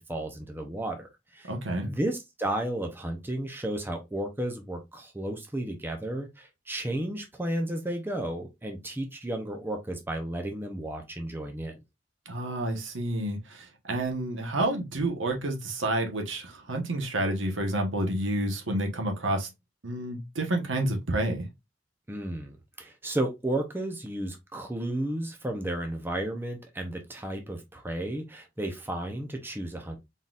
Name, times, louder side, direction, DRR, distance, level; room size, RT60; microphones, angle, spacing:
voice 1, 0.1-1.5 1.8-11.8 22.1-30.0, right 1 dB, 10° right, 0.6 m, -33 dB
voice 2, 1.5-1.9 12.3-19.5 19.8-21.5, right 1 dB, 75° right, 1.1 m, -29 dB
4.0 x 3.8 x 2.4 m
head